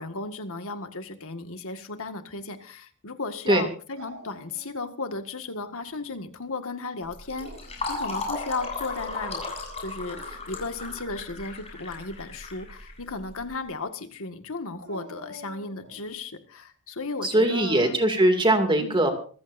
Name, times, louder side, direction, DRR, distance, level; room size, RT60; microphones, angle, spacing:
voice 1, 0.0-7.5 7.9-9.5 9.8-18.0 18.8-19.0, left 3 dB, 65° left, 7 dB, 1.9 m, -35 dB
Dog, 4.0-5.1 5.5-6.2 7.2-8.0 9.9-10.6 14.8-16.1, right 1 dB, 70° right, 7.3 m, -47 dB
Fill (with liquid), 7.1-13.5, left 3 dB, 30° left, 7.4 m, -35 dB
voice 2, 17.2-19.1, right 1 dB, 20° right, 5 dB, 2.5 m, -21 dB
26.5 x 15.0 x 2.7 m, 0.42 s
head